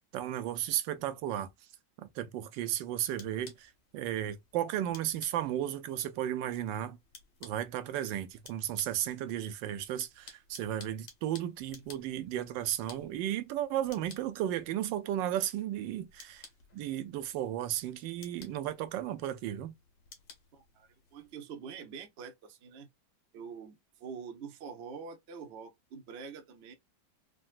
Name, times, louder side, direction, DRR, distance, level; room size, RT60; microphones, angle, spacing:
voice 1, 0.1-1.5 2.0-7.0 7.4-16.5 16.7-19.7, right 11 dB, 90° right, 1.3 m, -34 dB
sound 1, 2.6-21.3, left 5 dB, 80° left, 1.7 m, -57 dB
voice 2, 20.5-22.9 23.3-26.7, right 6 dB, 55° right, 0.7 m, -45 dB
3.8 x 2.2 x 2.4 m
omnidirectional pair, 1.9 m